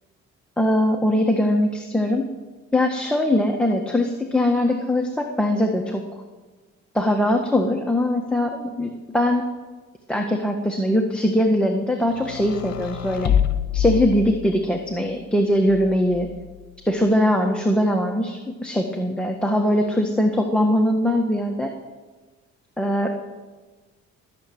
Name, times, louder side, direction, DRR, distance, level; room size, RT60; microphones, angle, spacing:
voice 1, 0.6-2.3 2.7-6.0 6.9-9.5 10.1-13.3 13.7-16.3 16.8-21.7 22.8-23.1, left 1 dB, 5° left, 2 dB, 1.6 m, -21 dB
sound 1, 12.1-14.8 15.7-16.6, left 10 dB, 60° left, 1.2 m, -26 dB
20.5 x 7.5 x 9.3 m, 1.3 s
cardioid pair, 90°, 30 cm